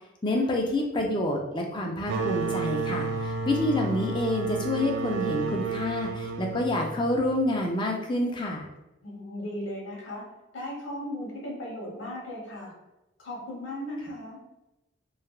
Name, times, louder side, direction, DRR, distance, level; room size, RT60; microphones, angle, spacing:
voice 1, 0.2-8.7, left 1 dB, 25° left, 1 dB, 0.4 m, -28 dB
sound 1, 2.1-7.5, right 4 dB, 70° right, 0.3 m, -31 dB
voice 2, 9.0-10.2 10.5-12.7 13.2-14.4, left 1 dB, 85° left, -2 dB, 1.0 m, -37 dB
3.3 x 2.2 x 2.3 m, 0.95 s
head